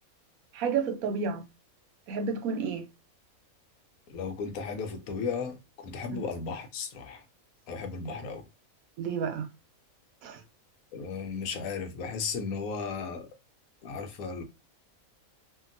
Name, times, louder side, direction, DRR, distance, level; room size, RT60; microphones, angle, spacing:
voice 1, 0.5-1.5 2.1-2.9 6.1-6.2 9.0-9.5 10.2-10.4, right 5 dB, 80° right, 1.1 m, -31 dB
voice 2, 4.1-7.2 7.7-8.5 10.9-13.3 13.8-14.4, left 5 dB, 90° left, 1.1 m, -35 dB
2.8 x 2.5 x 2.5 m
omnidirectional pair, 1.5 m